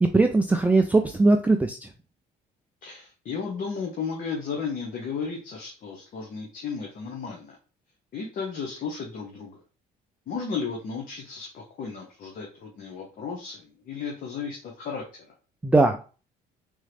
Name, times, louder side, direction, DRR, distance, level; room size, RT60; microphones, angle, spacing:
voice 1, 0.0-1.8 15.6-16.1, right 3 dB, 10° right, 4 dB, 0.4 m, -20 dB
voice 2, 2.8-7.5 8.1-9.6 10.3-15.3, left 5 dB, 55° left, 0 dB, 1.0 m, -34 dB
3.6 x 3.1 x 3.3 m, 0.35 s
cardioid pair, 110°, 17 cm